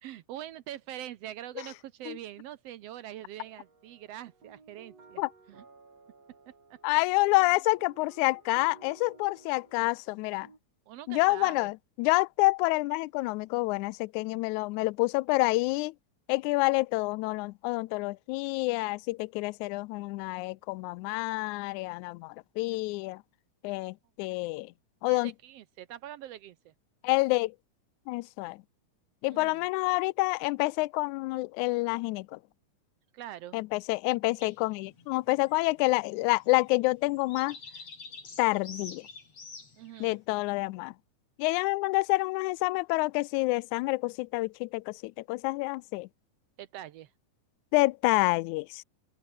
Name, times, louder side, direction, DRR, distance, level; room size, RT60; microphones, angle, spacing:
voice 1, 0.0-5.2 5.5-5.6 6.7-6.8 10.9-11.7 25.0-26.7 29.3-29.7 33.1-33.6 39.7-40.2 46.6-47.1, right 12 dB, 70° right, 1.5 m, -44 dB
sound 1, 3.4-10.6, right 4 dB, 50° right, 6.4 m, -57 dB
voice 2, 6.8-10.5 11.1-15.9 16.3-23.2 23.6-24.7 25.0-25.3 27.0-27.5 28.1-28.6 29.2-32.4 33.5-37.6 38.4-39.0 40.0-40.9 41.4-46.1 47.7-48.8, left 23 dB, 80° left, 1.9 m, -28 dB
sound 2, 34.4-40.2, left 4 dB, 50° left, 6.5 m, -48 dB
open air
omnidirectional pair, 3.6 m